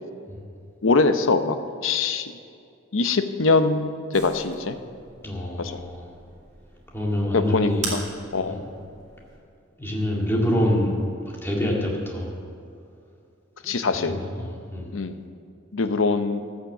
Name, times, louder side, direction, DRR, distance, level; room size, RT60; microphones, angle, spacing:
voice 1, 0.8-1.6 1.8-2.3 2.9-4.8 5.6-5.8 7.3-8.0 8.3-8.6 13.6-14.2 14.9-15.2 15.7-16.4, left 3 dB, 65° left, 9 dB, 0.7 m, -23 dB
sound 1, 4.1-9.4, right 3 dB, 35° right, 2.4 m, -40 dB
voice 2, 5.2-6.1 6.9-7.9 8.4-8.6 9.8-10.9 11.2-12.3 13.6-15.0, left 1 dB, 10° left, -3 dB, 2.1 m, -26 dB
13.5 x 6.5 x 7.1 m, 2.4 s
head